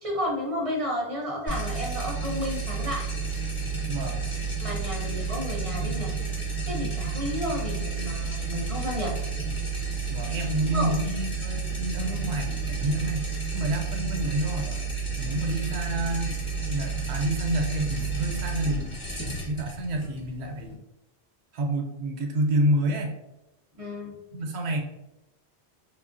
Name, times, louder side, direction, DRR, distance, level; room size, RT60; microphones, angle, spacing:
voice 1, 0.0-3.0 4.6-6.1 6.7-9.1 10.7-10.9 23.8-24.2, left 1 dB, 40° right, -3 dB, 0.5 m, -32 dB
sound 1, 1.5-20.7, right 4 dB, 30° left, 1.0 m, -31 dB
voice 2, 3.9-4.2 10.1-14.8 15.2-16.4 16.7-18.9 19.5-20.8 21.5-23.2 24.3-24.8, right 1 dB, 85° right, 3 dB, 0.9 m, -28 dB
3.1 x 2.3 x 2.5 m, 0.94 s
omnidirectional pair, 1.1 m